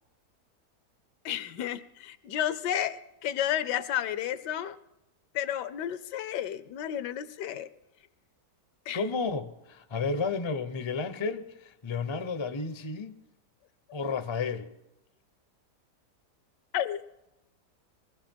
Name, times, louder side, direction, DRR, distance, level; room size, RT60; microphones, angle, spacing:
voice 1, 1.2-4.8 5.3-7.7 8.9-9.0 16.7-17.0, left 10 dB, 80° left, 1.3 m, -32 dB
voice 2, 8.9-13.1 13.9-14.7, left 4 dB, 40° left, 0.4 m, -32 dB
21.0 x 15.0 x 4.5 m
omnidirectional pair, 1.8 m